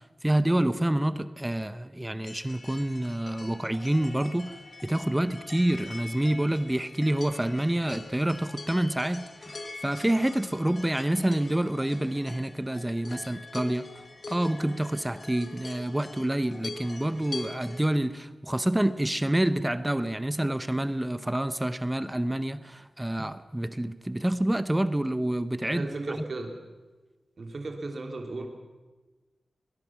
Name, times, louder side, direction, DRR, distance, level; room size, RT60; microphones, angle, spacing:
voice 1, 0.2-13.9 14.3-26.2, right 1 dB, 10° right, 0.7 m, -28 dB
sound 1, 2.2-18.0, left 3 dB, 45° left, 2.4 m, -44 dB
voice 2, 25.7-26.6 27.4-28.5, right 2 dB, 50° right, 2.7 m, -35 dB
22.5 x 20.0 x 6.0 m
wide cardioid pair, 120°, 0 cm